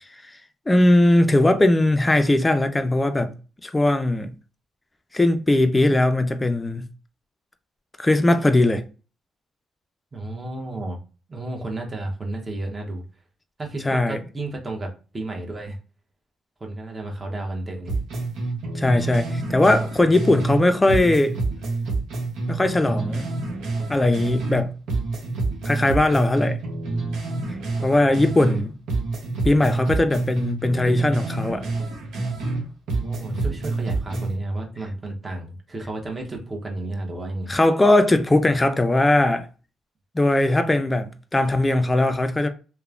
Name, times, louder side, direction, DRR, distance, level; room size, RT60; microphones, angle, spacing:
voice 1, 0.7-3.3 3.6-4.3 5.1-6.8 8.0-8.8 13.8-14.2 18.7-21.4 22.5-23.3 23.9-24.7 25.7-26.6 27.8-28.7 29.4-31.7 37.5-39.5 40.1-42.5, left 1 dB, 15° left, 0.4 m, -19 dB
voice 2, 10.1-11.0 11.3-13.0 13.6-15.8 16.6-18.0 33.0-37.5, right 2 dB, 25° right, 0.9 m, -32 dB
sound 1, 17.9-20.6 20.9-24.6 24.9-28.6 28.9-32.6 32.9-34.3, right 3 dB, 80° right, 0.9 m, -27 dB
3.0 x 2.1 x 2.4 m
cardioid pair, 90°, 0 cm